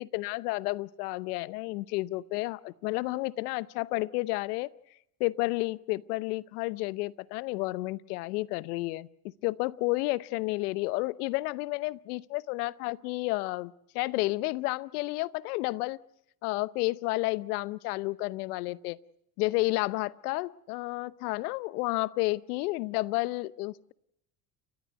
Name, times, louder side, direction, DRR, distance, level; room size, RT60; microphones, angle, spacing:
voice 1, 0.0-4.7 5.2-9.1 9.4-16.0 16.4-19.0 19.4-23.9, left 21 dB, 75° left, 18 dB, 0.9 m, -31 dB
29.5 x 13.5 x 8.0 m, 0.78 s
hypercardioid pair, 70°, 45 cm